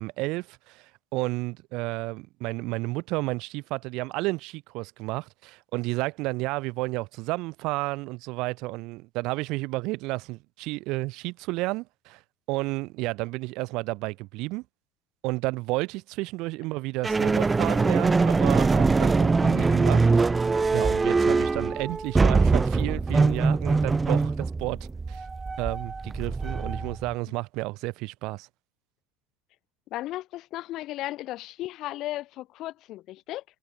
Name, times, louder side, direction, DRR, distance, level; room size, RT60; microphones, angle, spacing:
voice 1, 0.0-12.2 12.5-14.6 15.2-20.1 20.7-25.2 25.6-28.5, right 22 dB, 60° right, 4.3 m, -31 dB
sound 1, 17.0-27.1, right 4 dB, 15° right, 1.3 m, -23 dB
voice 2, 29.9-33.4, left 16 dB, 50° left, 4.9 m, -35 dB
supercardioid pair, 135°, 0 cm